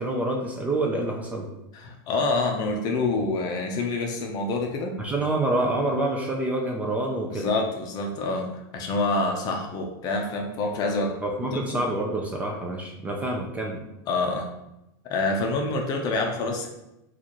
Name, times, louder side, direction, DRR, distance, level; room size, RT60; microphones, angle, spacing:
voice 1, 0.0-1.5 5.0-7.5 11.2-13.8, right 2 dB, 10° right, 0 dB, 0.4 m, -27 dB
voice 2, 1.7-5.0 7.3-11.2 11.4-11.8 14.1-14.5 15.0-16.7, left 3 dB, 35° left, 2 dB, 0.6 m, -27 dB
4.1 x 2.4 x 3.0 m, 0.91 s
supercardioid pair, 145°, 12 cm